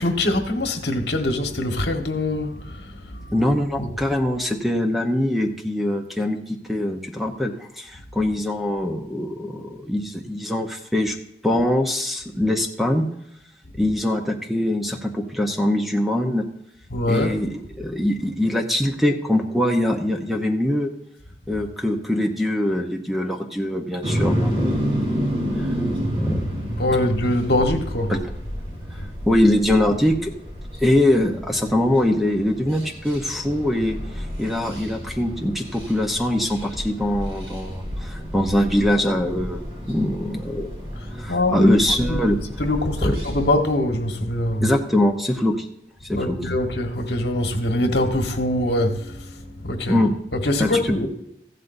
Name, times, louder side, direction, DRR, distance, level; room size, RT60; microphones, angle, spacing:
voice 1, 0.0-3.3 3.8-3.9 16.9-17.3 26.8-28.1 41.2-41.7 42.1-42.2 42.6-44.7 46.1-50.0 50.3-51.1, left 1 dB, 70° left, 1.4 m, -23 dB
voice 2, 3.3-11.2 11.4-13.1 13.8-16.4 17.1-20.9 21.5-25.2 25.6-25.7 26.1-26.5 28.1-28.2 29.3-30.3 30.8-40.9 41.2-42.4 43.0-43.1 44.6-45.7 46.1-46.4 49.9-50.1 50.6-50.7, left 1 dB, ahead, 0.9 m, -23 dB
sound 1, 24.0-43.5, equal, 30° right, 4.2 m, -30 dB
15.0 x 12.0 x 2.7 m
head